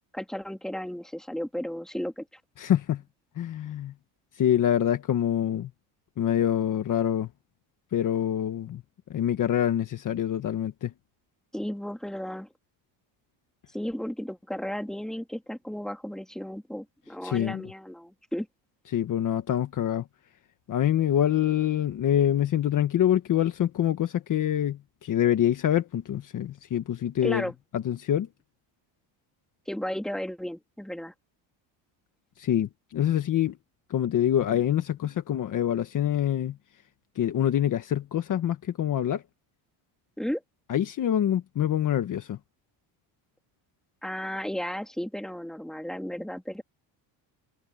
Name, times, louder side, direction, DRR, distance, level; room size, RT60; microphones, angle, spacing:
voice 1, 0.1-2.2 11.5-12.5 13.7-18.5 27.2-27.5 29.7-31.1 40.2-40.4 44.0-46.6, equal, ahead, 3.0 m, -34 dB
voice 2, 2.6-3.0 3.3-3.9 4.3-5.7 6.2-7.3 7.9-8.8 9.1-10.9 17.2-17.6 18.9-20.1 20.7-27.5 27.7-28.3 32.4-33.6 33.9-36.6 37.1-39.2 40.7-42.4, left 10 dB, 40° left, 1.4 m, -25 dB
cardioid pair, 150°, 46 cm